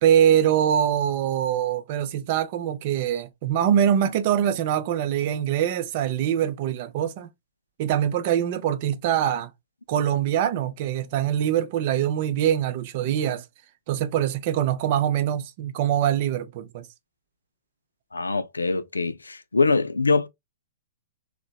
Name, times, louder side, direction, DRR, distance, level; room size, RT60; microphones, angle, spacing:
voice 1, 0.0-7.3 7.8-9.5 9.9-13.4 13.9-16.8, right 10 dB, 45° right, 0.5 m, -23 dB
voice 2, 18.1-20.3, left 3 dB, 90° left, 0.3 m, -23 dB
2.8 x 2.0 x 2.3 m
hypercardioid pair, 115°, 0 cm